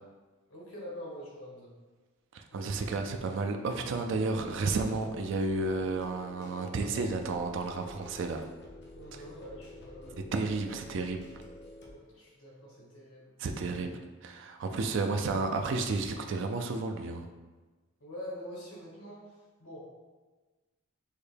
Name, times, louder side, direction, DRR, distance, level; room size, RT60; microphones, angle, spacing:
voice 1, 0.5-1.7 2.5-2.8 8.9-10.2 11.8-13.4 18.0-19.9, equal, 70° left, -4 dB, 1.4 m, -45 dB
voice 2, 2.3-8.5 10.1-11.2 13.4-13.9 14.2-17.3, right 3 dB, 55° right, 5 dB, 0.3 m, -32 dB
sound 1, 4.3-11.9, left 1 dB, 50° left, 0.7 m, -49 dB
6.4 x 2.1 x 3.3 m, 1.3 s
head